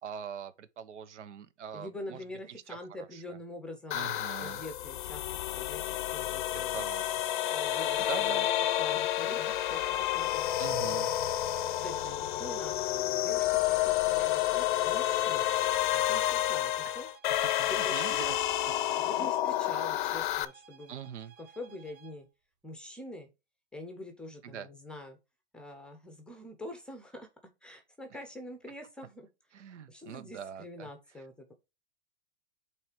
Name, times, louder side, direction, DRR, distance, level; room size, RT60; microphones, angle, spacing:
voice 1, 0.0-2.2 2.7-2.8 3.1-3.2 3.9-4.6 6.5-7.1 8.0-8.5 10.6-11.1 17.8-18.4 19.2-19.3 20.9-21.3 24.4-24.7 29.5-30.9, right 8 dB, 90° right, 1.0 m, -42 dB
voice 2, 1.7-5.2 5.5-6.8 7.4-8.5 8.8-11.5 11.8-15.5 15.9-17.1 17.6-18.4 19.0-21.0 21.4-22.3 22.6-23.3 23.7-25.2 25.5-27.3 27.6-29.3 29.9-31.5, left 1 dB, 5° left, 0.6 m, -45 dB
sound 1, 3.9-20.5, left 13 dB, 45° left, 0.6 m, -30 dB
sound 2, 13.5-22.2, right 6 dB, 40° right, 3.4 m, -56 dB
8.3 x 3.3 x 4.4 m
hypercardioid pair, 160°, 34 cm